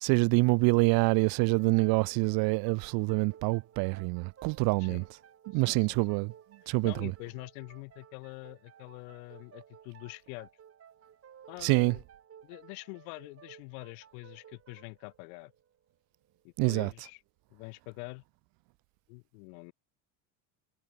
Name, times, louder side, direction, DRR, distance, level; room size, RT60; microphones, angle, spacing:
voice 1, 0.0-5.0 5.5-6.3 6.7-7.1 11.6-12.0 16.6-16.9, right 28 dB, 60° right, 0.5 m, -26 dB
sound 1, 1.1-16.5, right 8 dB, 35° right, 6.8 m, -57 dB
voice 2, 5.5-6.0 6.6-10.5 11.5-12.0 12.4-15.5 16.4-17.2 17.5-18.2 19.1-19.7, left 36 dB, 80° left, 3.0 m, -45 dB
cardioid pair, 130°, 43 cm